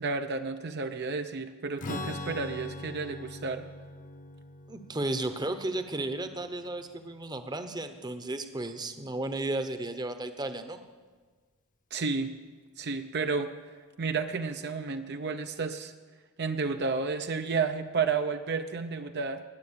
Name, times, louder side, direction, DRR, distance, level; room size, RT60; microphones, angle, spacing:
voice 1, 0.0-3.6 11.9-12.3 12.8-13.5 14.0-15.9 16.4-19.4, right 4 dB, 50° right, 6 dB, 0.7 m, -31 dB
Strum, 1.8-7.4, left 2 dB, 40° left, 0.9 m, -42 dB
voice 2, 4.7-10.8, right 2 dB, 20° right, 8 dB, 0.9 m, -34 dB
19.5 x 7.8 x 8.7 m, 1.4 s
head